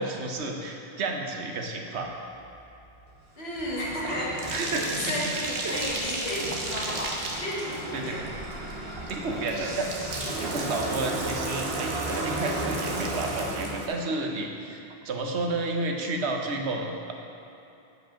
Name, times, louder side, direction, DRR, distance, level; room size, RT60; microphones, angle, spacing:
voice 1, 0.0-2.1 4.5-5.2 5.6-5.8 7.9-8.2 9.1-10.1 10.4-17.1, right 2 dB, 90° right, 2 dB, 1.1 m, -31 dB
Bathtub (filling or washing), 2.5-13.9, right 2 dB, 65° right, 1.1 m, -33 dB
voice 2, 3.4-4.4 5.0-8.2, left 1 dB, 70° left, -5 dB, 1.7 m, -33 dB
8.2 x 5.1 x 5.7 m, 2.8 s
omnidirectional pair, 1.1 m